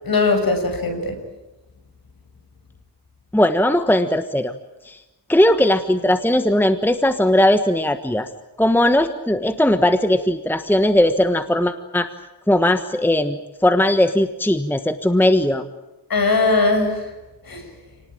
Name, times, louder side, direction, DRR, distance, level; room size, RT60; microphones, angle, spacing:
voice 1, 0.0-1.1 16.1-16.9 17.5-17.6, left 3 dB, 55° left, 5 dB, 6.5 m, -19 dB
voice 2, 3.3-4.5 4.8-5.0 5.3-8.3 8.6-12.1 12.5-15.6, left 1 dB, 5° left, 9 dB, 1.3 m, -18 dB
29.0 x 19.0 x 9.0 m, 1.0 s
wide cardioid pair, 105°, 42 cm